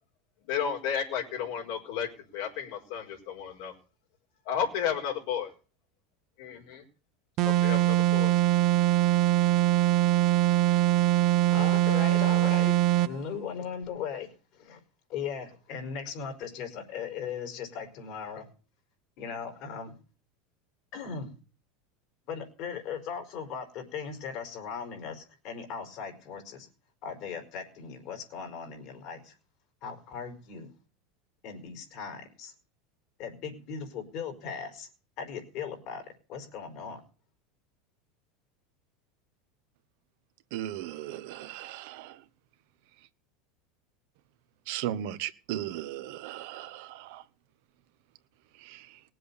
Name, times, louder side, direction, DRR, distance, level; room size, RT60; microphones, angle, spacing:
voice 1, 0.4-3.7 4.4-5.5 6.4-6.8 7.4-8.3, left 8 dB, 75° left, 2 dB, 4.8 m, -33 dB
sound 1, 7.4-13.2, right 14 dB, 50° right, 0.8 m, -23 dB
voice 2, 11.5-14.8 15.1-18.5 19.2-19.9 20.9-21.3 22.3-26.7 27.0-29.3 29.8-30.7 31.4-32.5 33.2-34.9 35.2-36.0 36.3-37.0, left 6 dB, 60° left, 6 dB, 4.5 m, -38 dB
voice 3, 40.5-42.3 44.7-47.2 48.5-49.0, right 12 dB, 70° right, 11 dB, 1.2 m, -37 dB
19.0 x 7.7 x 6.9 m, 0.37 s
supercardioid pair, 115°, 0 cm